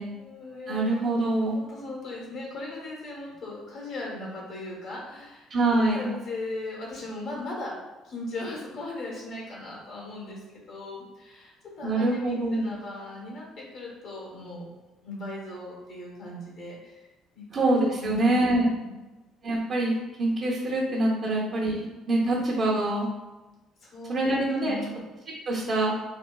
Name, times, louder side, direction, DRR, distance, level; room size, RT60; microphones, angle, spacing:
voice 1, 0.0-0.9 1.5-5.5 5.9-7.7 8.0-14.7 15.0-17.0 17.3-17.5 18.0-18.4 18.8-19.0 21.3-21.4 23.8-24.3 24.6-25.0, left 2 dB, 65° left, -3 dB, 1.1 m, -38 dB
voice 2, 0.7-1.6 5.5-6.1 11.8-12.7 17.5-18.7 19.4-23.1 24.1-24.8 25.5-25.9, right 2 dB, 50° right, -6 dB, 0.8 m, -25 dB
4.2 x 2.4 x 2.2 m, 1.1 s
supercardioid pair, 80°, 0 cm